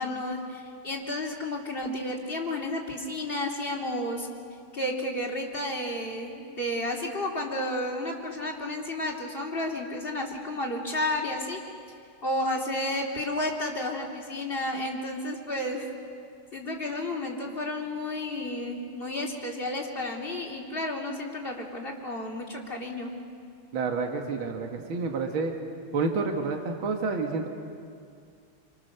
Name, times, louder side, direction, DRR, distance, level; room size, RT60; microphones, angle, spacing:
voice 1, 0.0-4.3 4.7-11.6 12.2-15.9 16.5-23.1, left 1 dB, 25° left, -1 dB, 3.1 m, -32 dB
voice 2, 23.7-25.5 25.9-27.5, right 4 dB, 65° right, 3 dB, 2.3 m, -29 dB
27.5 x 26.5 x 6.7 m, 2.3 s
omnidirectional pair, 2.4 m